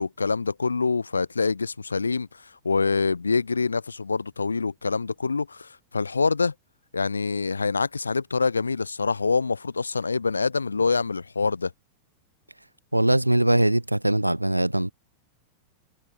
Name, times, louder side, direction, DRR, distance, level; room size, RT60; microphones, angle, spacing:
voice 1, 0.0-6.5 6.9-11.7, left 4 dB, 75° left, 3.5 m, -25 dB
voice 2, 12.9-14.9, right 1 dB, 85° right, 5.8 m, -21 dB
figure-of-eight pair, 90°, 0 cm